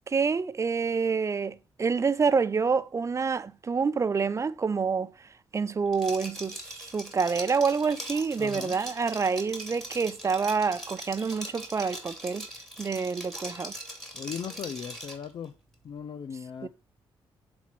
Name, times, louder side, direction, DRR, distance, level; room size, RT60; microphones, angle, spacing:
voice 1, 0.1-5.1 5.5-12.5 12.8-13.7 16.6-16.7, right 5 dB, 30° right, 0.6 m, -27 dB
Liquid, 5.9-15.3, right 1 dB, ahead, 2.8 m, -41 dB
voice 2, 8.4-8.8 14.1-15.6 15.8-16.7, left 7 dB, 55° left, 0.5 m, -38 dB
7.1 x 4.4 x 5.9 m
cardioid pair, 85°, 9 cm